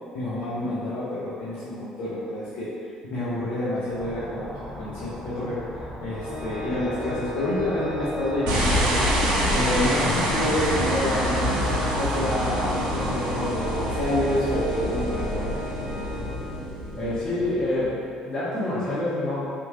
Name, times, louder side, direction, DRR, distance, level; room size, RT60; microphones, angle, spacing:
voice 1, 0.1-9.1 9.5-11.6 11.9-15.5, left 1 dB, 65° left, -10 dB, 0.6 m, -28 dB
sound 1, 3.9-11.6, left 1 dB, 10° left, 1.0 m, -39 dB
Organ, 6.1-16.8, left 1 dB, 40° right, 1.0 m, -37 dB
sound 2, 8.5-17.8, equal, 70° right, 0.6 m, -26 dB
voice 2, 16.9-19.5, left 1 dB, 35° left, -9 dB, 1.2 m, -27 dB
2.8 x 2.6 x 2.7 m, 2.4 s
hypercardioid pair, 55°, 3 cm